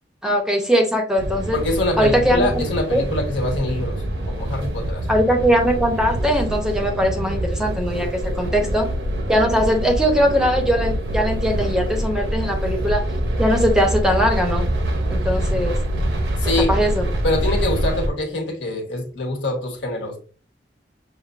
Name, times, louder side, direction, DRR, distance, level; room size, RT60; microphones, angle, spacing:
voice 1, 0.2-1.6 2.0-2.5 2.9-3.0 5.1-8.9 9.3-13.0 13.4-14.7 15.1-15.7 16.7-17.1, equal, 5° right, 3 dB, 0.6 m, -20 dB
sound 1, 1.2-18.1, right 1 dB, 75° right, 0.7 m, -25 dB
voice 2, 1.5-5.1 16.4-16.7 17.2-20.2, left 2 dB, 75° left, 2 dB, 1.2 m, -24 dB
5.8 x 2.5 x 2.4 m, 0.40 s
head